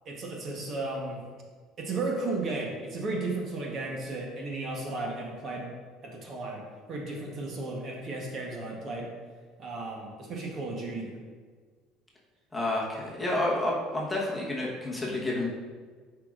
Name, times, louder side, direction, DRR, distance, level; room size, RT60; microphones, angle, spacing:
voice 1, 0.0-1.2 1.8-5.7 6.0-9.1 9.6-11.1, right 2 dB, 35° right, 0 dB, 1.0 m, -34 dB
voice 2, 12.5-15.5, left 2 dB, 10° left, -4 dB, 1.1 m, -29 dB
10.5 x 4.8 x 2.5 m, 1.5 s
cardioid pair, 155°, 0 cm